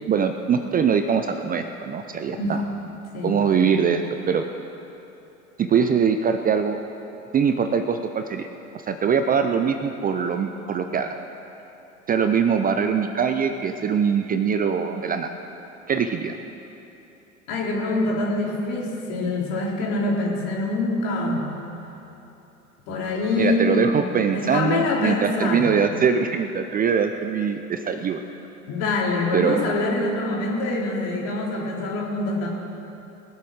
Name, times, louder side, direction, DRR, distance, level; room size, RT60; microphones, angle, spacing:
voice 1, 0.1-2.6 3.2-4.4 5.6-6.8 7.3-8.5 8.9-11.1 12.1-15.3 15.9-16.3 23.4-28.2 29.3-29.6, right 6 dB, 20° right, 7 dB, 0.5 m, -22 dB
voice 2, 17.5-21.5 22.9-25.7 28.7-32.5, left 2 dB, 55° left, -3 dB, 3.6 m, -25 dB
20.5 x 7.7 x 6.4 m, 3.0 s
hypercardioid pair, 85°, 41 cm